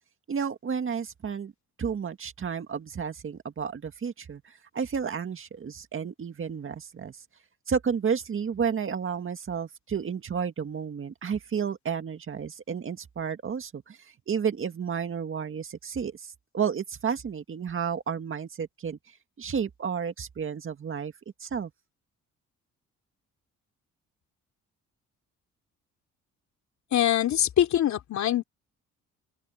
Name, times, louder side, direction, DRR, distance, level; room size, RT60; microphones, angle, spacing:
voice 1, 0.3-1.5 1.8-7.2 7.7-19.0 19.4-21.1 21.4-21.7, right 6 dB, 45° right, 2.0 m, -31 dB
voice 2, 26.9-28.4, left 11 dB, 65° left, 3.1 m, -23 dB
open air
cardioid pair, 90°, 30 cm